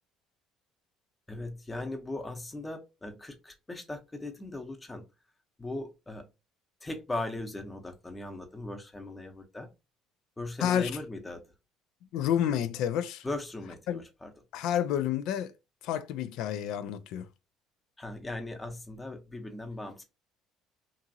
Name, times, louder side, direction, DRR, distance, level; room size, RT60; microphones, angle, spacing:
voice 1, 1.3-5.1 5.6-6.3 6.8-9.7 10.4-11.5 13.2-14.3 18.0-20.0, left 2 dB, 15° left, 0.7 m, -39 dB
voice 2, 10.6-10.9 12.1-13.3 13.9-14.0 14.5-15.5 15.8-17.3, left 10 dB, 75° left, 0.4 m, -29 dB
2.8 x 2.5 x 2.6 m
supercardioid pair, 90°, 0 cm